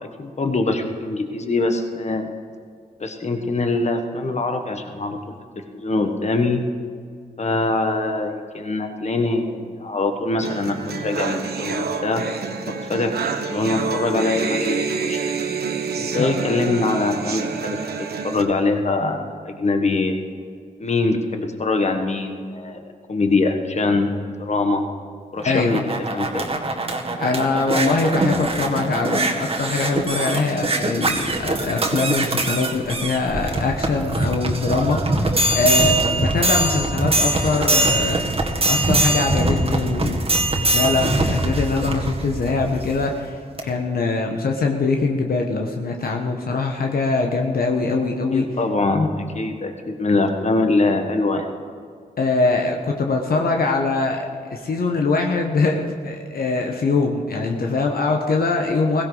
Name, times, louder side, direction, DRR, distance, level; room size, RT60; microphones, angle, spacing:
voice 1, 0.0-2.3 3.0-5.3 5.7-6.6 7.4-12.2 12.7-13.1 13.4-15.2 15.9-17.8 18.2-19.2 19.4-20.2 20.8-22.8 23.1-24.1 24.4-24.8 25.3-25.8 26.1-26.5 48.3-51.5, left 3 dB, 45° left, 5 dB, 1.5 m, -23 dB
sound 1, 10.4-18.4, right 5 dB, 75° right, 1.2 m, -27 dB
voice 2, 25.4-25.8 27.2-38.3 38.6-40.2 40.7-43.4 43.6-48.4 52.2-59.0, left 3 dB, 65° left, 2 dB, 1.2 m, -22 dB
sound 2, 25.4-43.0 43.6-43.7, right 2 dB, 35° right, 1.8 m, -22 dB
16.0 x 16.0 x 4.0 m, 2.2 s
cardioid pair, 65°, 16 cm